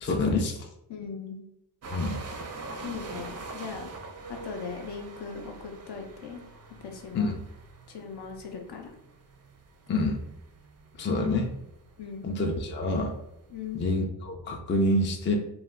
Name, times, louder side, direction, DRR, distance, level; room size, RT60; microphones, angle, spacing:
voice 1, 0.0-0.6 1.9-2.2 7.1-7.4 9.9-10.2 11.0-11.5 12.2-13.1 13.7-15.4, left 2 dB, 25° left, 2 dB, 0.3 m, -27 dB
voice 2, 0.9-1.4 2.8-3.9 4.3-6.4 6.8-7.3 7.9-8.9 12.0-12.3 13.5-13.8, left 5 dB, 60° left, 2 dB, 0.7 m, -39 dB
sound 1, 1.8-13.8, right 3 dB, 35° right, 0.4 m, -44 dB
2.1 x 2.1 x 3.5 m, 0.81 s
cardioid pair, 70°, 46 cm